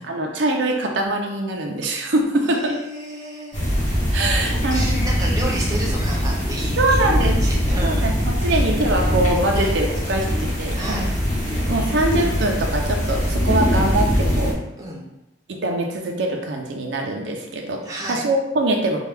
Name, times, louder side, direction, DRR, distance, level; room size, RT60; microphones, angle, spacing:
voice 1, 0.0-2.7 4.1-4.8 6.8-7.5 7.8-11.1 11.5-14.5 15.5-19.0, right 1 dB, 70° right, 1 dB, 0.5 m, -23 dB
voice 2, 2.4-3.6 4.4-8.0 8.5-8.6 9.5-9.8 10.7-11.1 14.8-15.1 17.8-18.2, right 1 dB, 20° right, -3 dB, 0.7 m, -32 dB
sound 1, 3.5-14.5, equal, 40° left, 1.0 m, -22 dB
4.4 x 2.3 x 3.3 m, 0.91 s
head